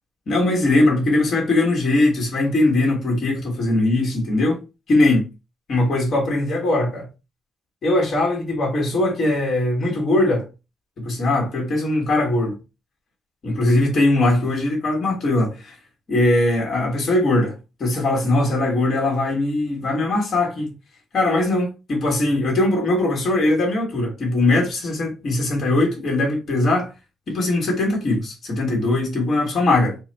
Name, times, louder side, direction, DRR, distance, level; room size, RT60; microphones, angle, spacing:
voice 1, 0.3-4.6 4.9-5.3 5.7-7.1 7.8-10.5 11.0-12.6 13.4-15.8 16.1-17.5 17.8-20.7 21.1-26.9 27.3-30.0, left 2 dB, 45° left, 1.8 m, -20 dB
4.5 x 2.3 x 4.1 m
cardioid pair, 155°, 0 cm